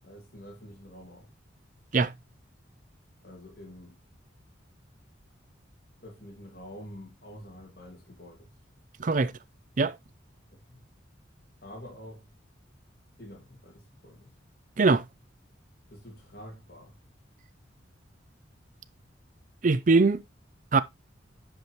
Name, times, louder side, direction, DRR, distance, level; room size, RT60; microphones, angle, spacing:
voice 1, 0.0-1.3 3.2-4.0 6.0-8.6 10.5-10.8 11.6-12.3 13.2-14.3 15.9-17.0, equal, 50° left, 2.3 m, -47 dB
voice 2, 9.0-9.3 9.8-9.9 14.8-15.0 19.6-20.2 20.7-20.8, right 3 dB, 40° right, 0.5 m, -21 dB
10.5 x 5.4 x 3.0 m
head